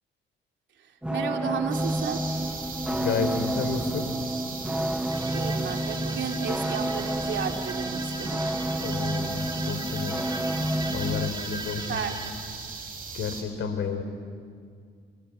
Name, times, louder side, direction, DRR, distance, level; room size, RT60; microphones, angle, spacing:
sound 1, 1.0-11.3, right 1 dB, 5° right, 1.3 m, -30 dB
voice 1, 1.1-2.3 5.3-8.4 11.9-12.3, right 7 dB, 65° right, 4 dB, 2.5 m, -33 dB
sound 2, 1.7-13.4, right 4 dB, 45° right, 5.5 m, -38 dB
voice 2, 2.9-4.0 8.8-10.2 10.9-12.0 13.1-14.0, left 6 dB, 75° left, 8 dB, 3.5 m, -31 dB
sound 3, 5.1-12.3, right 2 dB, 20° right, 4.1 m, -40 dB
29.5 x 21.5 x 8.5 m, 2.1 s
cardioid pair, 90°, 20 cm